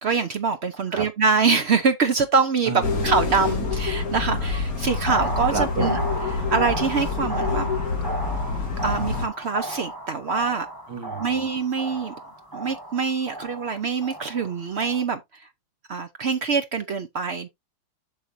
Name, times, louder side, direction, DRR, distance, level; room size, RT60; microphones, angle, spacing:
voice 1, 0.0-2.7 3.0-6.0 6.3-7.7 8.8-10.7 11.2-12.1 12.5-15.5 15.9-17.5, right 5 dB, 85° right, 0.5 m, -24 dB
voice 2, 2.7-3.1 5.5-6.0 10.9-11.5, right 5 dB, 60° right, 2.5 m, -30 dB
sound 1, 2.8-9.3, left 4 dB, 45° left, 2.5 m, -27 dB
sound 2, 4.9-15.0, right 1 dB, 10° right, 2.1 m, -34 dB
8.2 x 6.5 x 2.7 m
omnidirectional pair, 2.2 m